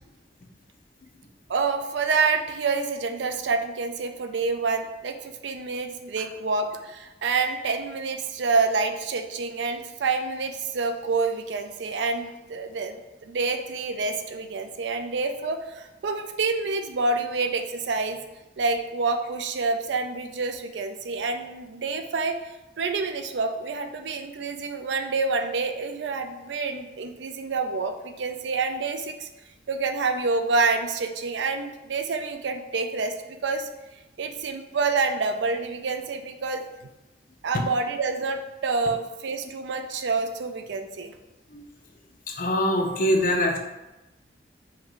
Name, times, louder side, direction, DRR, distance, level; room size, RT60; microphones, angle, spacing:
voice 1, 1.5-13.0 13.2-18.2 18.6-22.4 22.8-29.3 29.7-33.7 34.2-36.6 37.4-41.1, right 4 dB, 85° right, 7 dB, 0.4 m, -27 dB
voice 2, 42.3-43.6, left 1 dB, 50° left, 2 dB, 0.6 m, -23 dB
5.3 x 2.3 x 3.8 m, 1.0 s
head